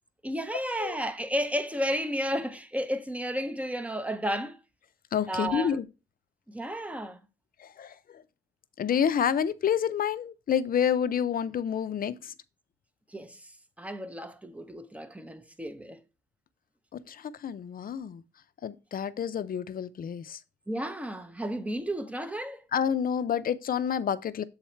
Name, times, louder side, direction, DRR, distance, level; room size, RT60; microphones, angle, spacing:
voice 1, 0.2-4.6 5.3-5.8 6.5-7.2 13.1-13.5 13.8-16.0 20.7-22.6, equal, 5° right, 0.6 m, -32 dB
voice 2, 5.1-5.8 7.6-8.2 8.8-12.3 17.1-18.2 18.6-20.4 22.7-24.4, left 8 dB, 50° left, 0.5 m, -29 dB
7.1 x 4.0 x 4.4 m
cardioid pair, 115°, 19 cm